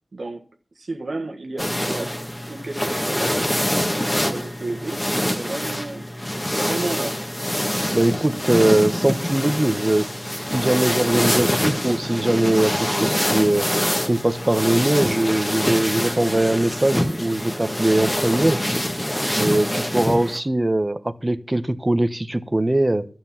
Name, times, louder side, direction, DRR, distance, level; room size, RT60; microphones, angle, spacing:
voice 1, 0.1-0.4 0.7-2.2 2.5-3.5 4.2-6.1 6.5-7.2, right 2 dB, 60° right, 4 dB, 1.4 m, -32 dB
sound 1, 1.6-20.4, equal, 15° left, 1.7 m, -25 dB
voice 2, 7.9-10.1 10.5-13.7 14.1-18.6 19.3-23.1, right 1 dB, 25° right, 11 dB, 1.0 m, -21 dB
12.5 x 7.7 x 7.3 m, 0.42 s
wide cardioid pair, 60°, 0 cm